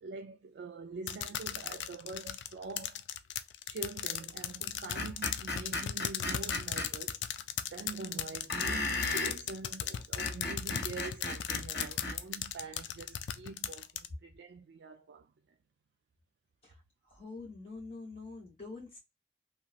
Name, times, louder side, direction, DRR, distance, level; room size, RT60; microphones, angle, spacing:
voice 1, 0.0-3.0 3.7-7.3 7.6-15.3, right 4 dB, 75° right, 0.3 m, -45 dB
sound 1, 1.1-14.1, left 10 dB, 90° left, 0.3 m, -36 dB
Screech, 5.0-6.9 8.5-9.4 10.0-12.2, left 2 dB, 65° left, 1.0 m, -35 dB
voice 2, 17.1-19.0, left 3 dB, 35° left, 1.3 m, -45 dB
2.9 x 2.6 x 2.3 m
head